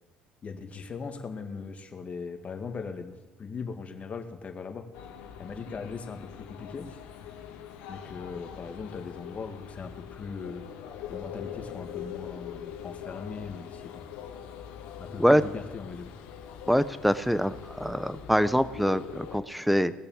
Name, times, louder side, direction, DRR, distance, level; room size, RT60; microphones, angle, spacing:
voice 1, 0.4-4.9 5.4-7.0 7.9-10.6 11.1-14.0 15.0-16.1, left 5 dB, 40° left, 5 dB, 2.0 m, -39 dB
sound 1, 4.9-19.4, left 9 dB, 85° left, 1.5 m, -43 dB
voice 2, 16.7-19.9, equal, ahead, 14 dB, 0.8 m, -24 dB
19.0 x 6.8 x 7.3 m, 1.1 s
supercardioid pair, 80°, 4 cm